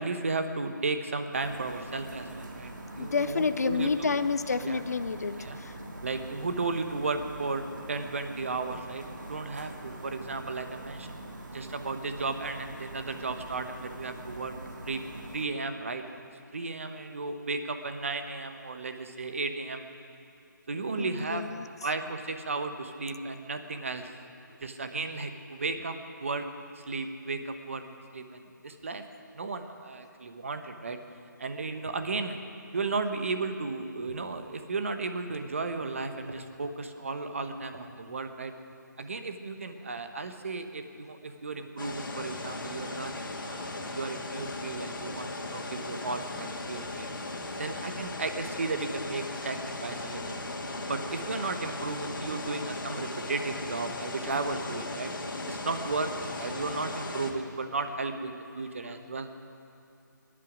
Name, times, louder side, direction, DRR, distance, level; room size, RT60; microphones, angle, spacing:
voice 1, 0.0-2.7 3.0-4.2 4.6-4.8 5.4-5.6 6.0-11.2 11.5-14.5 14.8-15.0 15.3-16.0 16.5-19.9 20.7-21.5 21.8-24.1 24.6-26.5 26.9-27.8 28.1-29.0 29.3-31.0 31.4-32.4 32.7-38.5 39.0-47.1 47.6-50.5 50.8-55.1 55.5-59.3, right 3 dB, 40° right, 7 dB, 1.0 m, -34 dB
sound 1, 1.3-15.5, right 1 dB, 65° right, 2.0 m, -44 dB
voice 2, 3.0-5.7 21.0-21.7, left 5 dB, 50° left, 12 dB, 0.5 m, -29 dB
sound 2, 41.8-57.3, left 2 dB, 80° left, 2.1 m, -37 dB
23.5 x 11.0 x 5.1 m, 2.6 s
hypercardioid pair, 175°, 11 cm